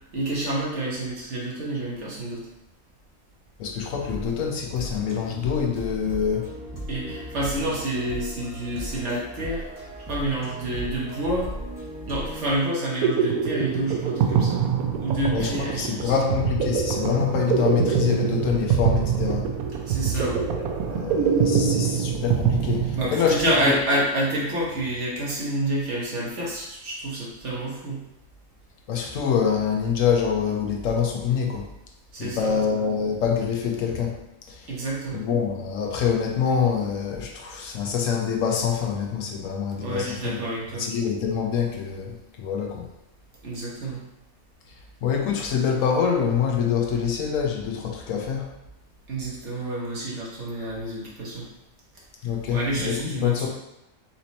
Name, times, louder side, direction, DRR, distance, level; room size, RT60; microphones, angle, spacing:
voice 1, 0.1-2.5 6.9-9.7 10.0-11.5 12.1-14.6 15.0-16.3 19.9-20.5 22.9-28.0 32.1-32.6 34.7-35.3 39.8-40.9 43.4-44.0 49.1-51.5 52.5-53.5, right 1 dB, 55° right, -5 dB, 1.4 m, -28 dB
voice 2, 3.6-6.5 15.3-19.4 20.5-23.7 28.9-31.6 32.2-34.2 34.5-34.7 35.1-40.4 40.8-42.9 45.0-48.5 52.2-53.5, left 7 dB, 70° left, 1 dB, 1.0 m, -25 dB
sound 1, 3.8-12.5, right 1 dB, 15° right, 0.9 m, -37 dB
sound 2, 12.7-23.5, right 6 dB, 85° right, 1.0 m, -24 dB
4.2 x 2.9 x 4.0 m, 0.89 s
omnidirectional pair, 1.5 m